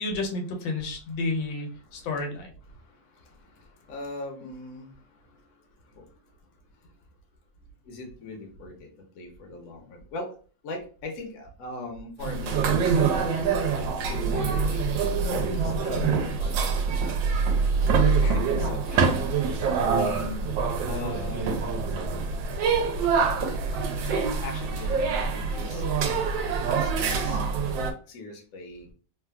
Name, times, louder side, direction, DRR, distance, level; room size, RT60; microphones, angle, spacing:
voice 1, 0.0-2.5 15.9-16.2, left 2 dB, 85° left, 2 dB, 1.4 m, -31 dB
voice 2, 2.7-5.4 5.8-6.1 7.8-8.9 9.1-10.4 10.6-13.3 13.7-15.0 15.3-17.3 17.9-19.3 19.9-20.5 20.9-21.8 23.0-23.1 23.7-26.4 26.7-27.4 27.7-28.9, left 2 dB, 60° left, 2 dB, 1.0 m, -40 dB
sound 1, 12.2-27.9, right 5 dB, 80° right, 1.3 m, -25 dB
3.3 x 2.3 x 2.2 m, 0.39 s
omnidirectional pair, 2.0 m